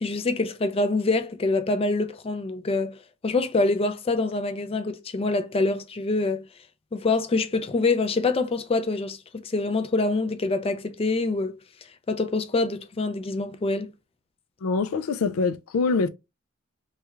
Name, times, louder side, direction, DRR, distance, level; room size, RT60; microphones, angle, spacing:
voice 1, 0.0-3.0 3.2-6.4 6.9-9.2 9.4-11.6 12.1-13.9, left 3 dB, 30° left, 0.4 m, -25 dB
voice 2, 14.6-16.1, left 4 dB, 90° left, 0.4 m, -24 dB
3.3 x 2.3 x 3.1 m
head